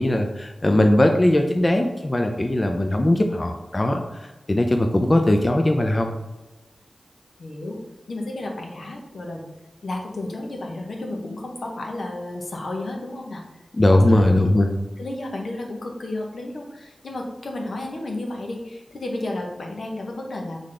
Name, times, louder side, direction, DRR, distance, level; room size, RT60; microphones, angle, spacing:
voice 1, 0.0-6.1 13.7-14.7, left 1 dB, 35° left, 4 dB, 0.4 m, -19 dB
voice 2, 7.4-7.8 8.1-9.5 9.8-13.4 13.9-14.6 15.0-20.6, left 2 dB, 75° left, 1 dB, 0.8 m, -32 dB
3.8 x 3.6 x 3.3 m, 1.0 s
wide cardioid pair, 65°, 0 cm